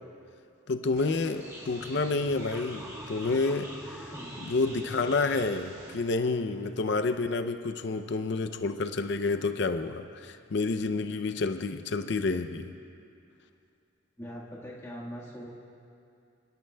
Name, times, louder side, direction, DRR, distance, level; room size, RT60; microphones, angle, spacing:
voice 1, 0.7-4.0 4.4-12.7, left 3 dB, 55° left, 8 dB, 0.5 m, -29 dB
sound 1, 1.0-6.0, equal, 15° right, 1.2 m, -44 dB
voice 2, 14.2-15.5, equal, 15° left, -7 dB, 1.5 m, -41 dB
24.5 x 12.0 x 2.2 m, 2.5 s
head